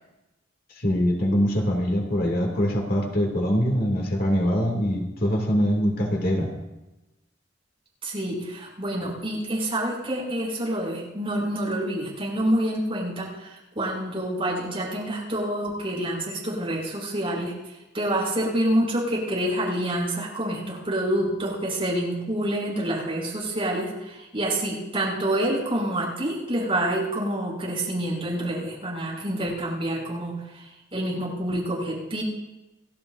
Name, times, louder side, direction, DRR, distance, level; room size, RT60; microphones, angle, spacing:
voice 1, 0.8-6.5, equal, 55° left, 0 dB, 2.5 m, -23 dB
voice 2, 8.0-32.2, right 1 dB, 30° right, -5 dB, 6.6 m, -27 dB
29.0 x 12.5 x 2.6 m, 1.0 s
head